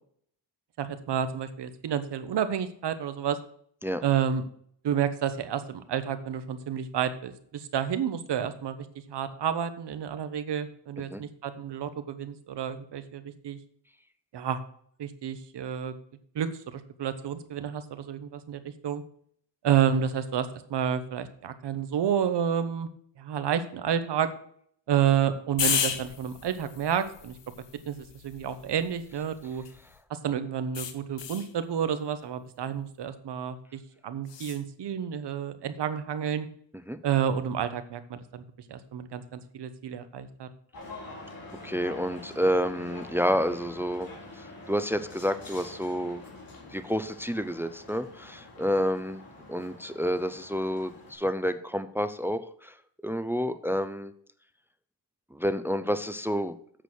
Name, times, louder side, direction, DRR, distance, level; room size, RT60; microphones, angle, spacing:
voice 1, 0.8-3.4 4.0-4.4 4.8-8.8 9.1-13.6 14.3-14.6 15.0-15.9 16.3-19.0 19.6-22.9 23.2-24.3 24.9-27.4 27.9-29.6 30.1-36.5 37.0-38.4 38.7-40.5, right 8 dB, 65° right, 11 dB, 1.1 m, -30 dB
sound 1, 25.6-30.0 30.7-31.5 34.3-34.6, left 8 dB, 70° left, 1.2 m, -34 dB
sound 2, 40.7-51.1, left 2 dB, 50° left, 3.6 m, -46 dB
voice 2, 41.6-44.1 44.4-46.2 46.7-49.2 49.5-52.7 53.0-54.1 55.3-56.6, equal, 5° right, 11 dB, 0.5 m, -29 dB
8.2 x 6.2 x 6.3 m, 0.62 s
cardioid pair, 115°, 44 cm